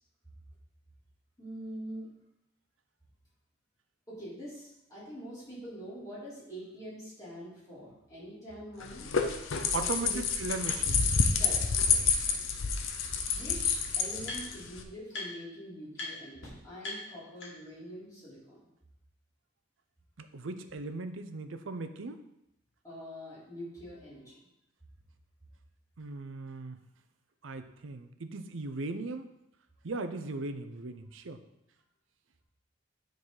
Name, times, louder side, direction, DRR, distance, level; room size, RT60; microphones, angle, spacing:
voice 1, 1.4-2.1 4.1-9.1 9.8-10.2 11.4-12.4 13.3-18.6 22.8-24.4, equal, 15° left, -9 dB, 3.3 m, -44 dB
sound 1, 8.8-14.8, left 5 dB, 90° left, 0.7 m, -29 dB
voice 2, 9.7-11.1 20.2-22.2 26.0-26.8 27.4-29.3 29.8-31.4, right 3 dB, 85° right, 9 dB, 0.6 m, -38 dB
hitachi ibm clicking, 10.8-10.9 11.5-11.6 12.9-13.0 13.2-14.7 15.1-15.6 15.9-16.1 16.4-16.5 16.8-17.8, left 2 dB, 65° left, 2.3 m, -43 dB
9.5 x 3.9 x 4.9 m, 0.84 s
head